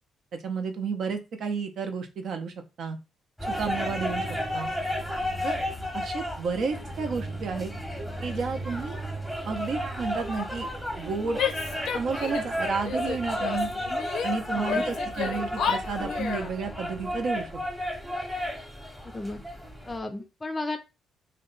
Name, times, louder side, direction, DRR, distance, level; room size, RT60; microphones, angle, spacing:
voice 1, 0.3-3.0 3.5-4.7 5.4-5.6 5.9-7.7 8.2-9.0 9.5-10.7 11.0-11.4 11.9-13.7 14.2-17.6, right 5 dB, 65° right, 6 dB, 0.7 m, -31 dB
sound 1, 3.4-20.0, equal, ahead, 0.9 m, -33 dB
Female speech woman speaking / Yell, 11.4-12.6 12.8-14.3 14.6-16.5, left 7 dB, 75° left, 0.5 m, -31 dB
voice 2, 14.5-14.8 19.1-19.4 19.9-20.8, left 2 dB, 20° left, 6 dB, 0.4 m, -33 dB
2.7 x 2.2 x 3.8 m, 0.27 s
cardioid pair, 90°, 0 cm